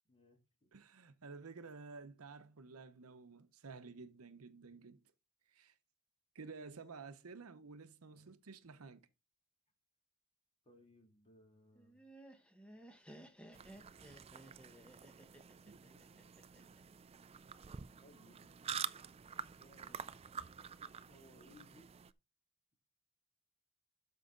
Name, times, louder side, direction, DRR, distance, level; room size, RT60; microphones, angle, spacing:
voice 1, 0.1-0.7 8.1-8.3 10.6-12.0 15.8-16.3 18.0-18.5 19.6-20.2 21.0-21.9, left 1 dB, 25° left, 2.5 m, -64 dB
voice 2, 0.7-5.0 5.5-5.7 6.3-9.1, right 4 dB, 70° right, 0.8 m, -52 dB
Laughter, 11.7-16.8, right 1 dB, 5° left, 1.1 m, -57 dB
sound 1, 13.5-22.1, right 7 dB, 25° right, 0.4 m, -48 dB
12.5 x 5.4 x 3.8 m
head